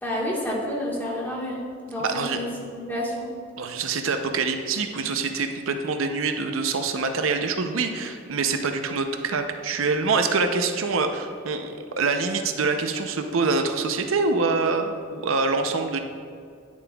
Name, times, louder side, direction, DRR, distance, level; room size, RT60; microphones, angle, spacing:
voice 1, 0.0-2.0 2.3-3.3, left 1 dB, 10° left, -4 dB, 1.4 m, -29 dB
voice 2, 2.0-2.4 3.6-16.0, right 4 dB, 85° right, 6 dB, 0.6 m, -25 dB
10.0 x 7.2 x 2.3 m, 2.2 s
head